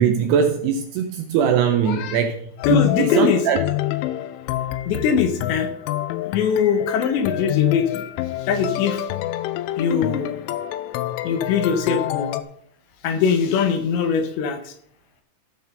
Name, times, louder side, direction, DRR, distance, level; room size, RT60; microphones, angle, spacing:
voice 1, 0.0-2.4 2.7-3.6, right 7 dB, 80° right, 6 dB, 2.5 m, -20 dB
voice 2, 1.8-2.2 2.6-3.5 4.9-5.7 6.3-8.0 8.4-9.1 9.8-10.3 11.2-12.3 13.0-14.7, left 6 dB, 75° left, 7 dB, 3.2 m, -22 dB
sound 1, 2.6-12.4, left 14 dB, 90° left, 3.1 m, -27 dB
15.0 x 6.5 x 5.3 m, 0.65 s
omnidirectional pair, 5.5 m